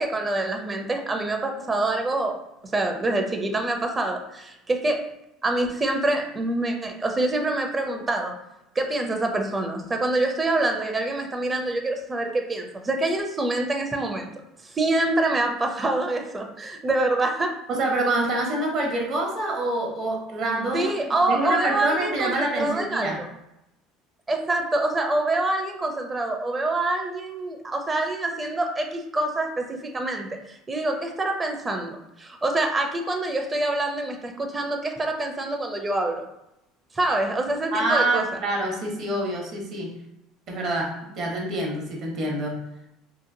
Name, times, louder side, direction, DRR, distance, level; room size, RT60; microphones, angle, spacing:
voice 1, 0.0-2.4 2.7-5.0 5.4-8.3 8.7-14.3 14.6-17.6 20.7-23.3 24.3-36.2 36.9-38.3, right 2 dB, 25° right, 3 dB, 0.5 m, -26 dB
voice 2, 17.7-23.2 37.7-39.9 40.5-42.6, right 2 dB, 55° right, 0 dB, 0.9 m, -26 dB
2.8 x 2.3 x 2.6 m, 0.86 s
supercardioid pair, 95°, 0 cm